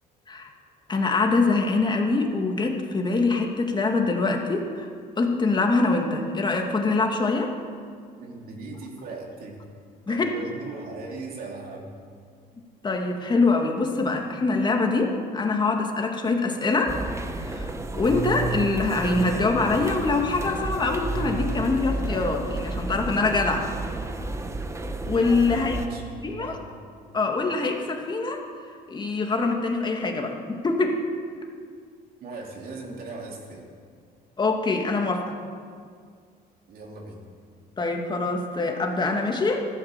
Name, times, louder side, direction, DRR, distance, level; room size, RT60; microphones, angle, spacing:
voice 1, 0.9-4.9 5.2-7.5 10.1-10.3 12.8-17.0 17.4-17.7 17.9-23.7 25.1-25.8 26.2-26.6 27.1-28.4 28.9-31.0 34.4-35.4 37.8-39.7, left 3 dB, 25° left, 2 dB, 2.2 m, -24 dB
voice 2, 8.2-9.6 10.1-11.9 25.4-26.6 32.2-33.6 36.7-37.2, right 3 dB, 60° right, -1 dB, 3.4 m, -38 dB
sound 1, 16.9-25.9, right 2 dB, 15° right, 1.2 m, -31 dB
14.5 x 12.0 x 7.6 m, 2.1 s
cardioid pair, 110°, 17 cm